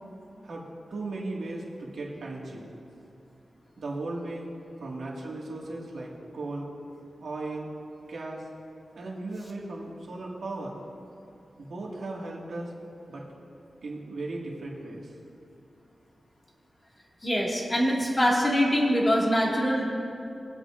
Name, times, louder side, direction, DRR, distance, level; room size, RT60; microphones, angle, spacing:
voice 1, 0.4-2.7 3.8-4.5 4.8-6.7 7.2-7.7 8.1-8.5 8.9-10.8 11.6-12.8 13.1-13.3 13.8-15.2, right 2 dB, 80° right, -3 dB, 1.8 m, -36 dB
voice 2, 17.2-19.8, equal, 20° left, -3 dB, 1.9 m, -24 dB
20.5 x 8.0 x 2.5 m, 2.6 s
wide cardioid pair, 85°, 0 cm